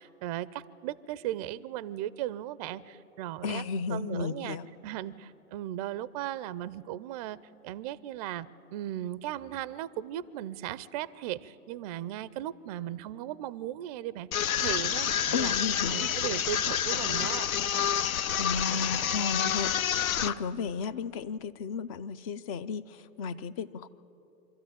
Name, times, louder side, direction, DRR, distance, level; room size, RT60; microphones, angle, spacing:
voice 1, 0.0-3.6 3.9-4.6 4.8-7.4 7.6-14.3 14.6-15.5 15.9-17.5, right 12 dB, 30° right, 18 dB, 0.4 m, -37 dB
voice 2, 3.4-4.7 15.3-16.1 18.4-23.9, left 5 dB, 25° left, 16 dB, 0.4 m, -34 dB
sound 1, 14.3-20.3, left 9 dB, 70° left, 0.9 m, -28 dB
25.5 x 13.5 x 9.0 m, 2.9 s
hypercardioid pair, 120°, 43 cm